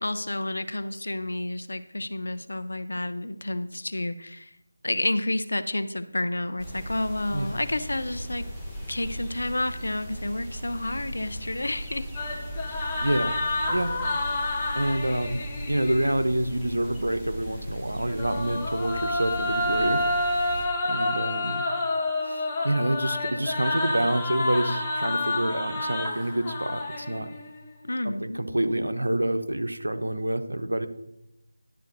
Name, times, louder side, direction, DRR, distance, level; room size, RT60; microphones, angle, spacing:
voice 1, 0.0-4.5 4.8-8.5 8.9-12.3 27.8-28.4, left 1 dB, 70° left, 13 dB, 0.7 m, -30 dB
sound 1, 6.6-20.7, equal, ahead, 1.4 m, -38 dB
sound 2, 12.1-16.1 17.9-27.5, left 2 dB, 15° left, 1.4 m, -29 dB
voice 2, 12.7-13.4 13.7-13.9 14.7-20.0 20.9-21.6 22.3-27.3 28.0-30.9, right 1 dB, 80° right, 8 dB, 1.0 m, -27 dB
10.5 x 3.9 x 6.6 m, 0.86 s
figure-of-eight pair, 165°, 0 cm